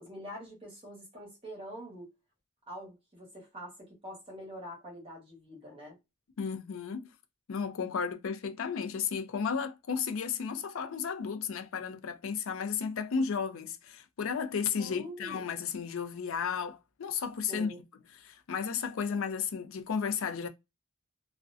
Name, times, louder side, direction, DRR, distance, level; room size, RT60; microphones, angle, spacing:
voice 1, 0.0-2.1 2.7-6.0 14.8-15.4 17.5-17.8, equal, 25° right, 1.0 m, -45 dB
voice 2, 6.4-7.1 7.5-17.7 18.2-20.5, left 6 dB, 65° left, 0.4 m, -33 dB
2.4 x 2.1 x 2.4 m
head